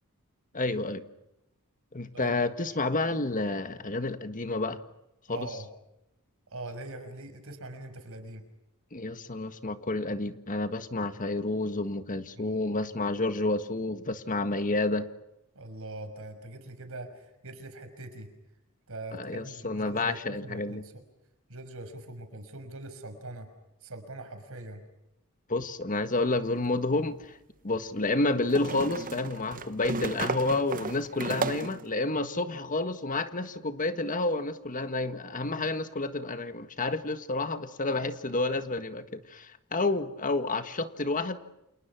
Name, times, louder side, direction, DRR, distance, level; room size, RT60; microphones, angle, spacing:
voice 1, 0.5-1.0 1.9-4.8 5.3-5.5 8.9-15.1 19.1-20.8 25.5-27.4 27.6-41.4, left 2 dB, 40° left, 10 dB, 1.6 m, -30 dB
voice 2, 5.3-5.7 6.5-8.4 12.4-12.8 15.5-18.3 18.9-21.0 21.5-23.5 23.8-24.8 29.5-29.6 31.3-31.5 32.1-32.3, right 2 dB, 65° right, 8 dB, 5.8 m, -42 dB
sound 1, 26.5-26.6 28.5-31.9, right 4 dB, 40° right, 0.9 m, -34 dB
30.0 x 28.0 x 6.1 m, 0.88 s
head